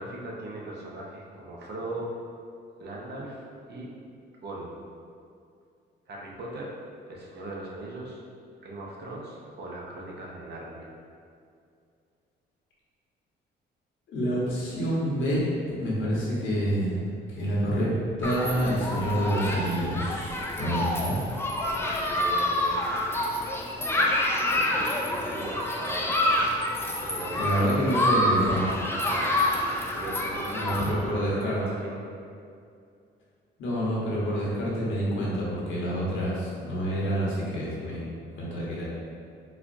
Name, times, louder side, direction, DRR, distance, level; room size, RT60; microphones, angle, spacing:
voice 1, 0.0-2.1 2.8-3.9 4.4-4.8 6.1-6.7 7.1-8.2 8.6-10.9 21.6-22.9 23.9-24.2 24.6-26.2 27.0-28.7 29.0-29.4 29.7-32.0, right 2 dB, 55° right, -3 dB, 0.7 m, -39 dB
voice 2, 14.1-15.4 15.8-17.9 18.2-21.2 27.3-28.6 30.5-31.6 33.6-38.0 38.4-38.8, equal, 75° left, -7 dB, 1.1 m, -27 dB
Human group actions, 18.2-30.9, left 1 dB, 10° left, 0.4 m, -27 dB
4.3 x 2.3 x 2.5 m, 2.4 s
cardioid pair, 90°, 20 cm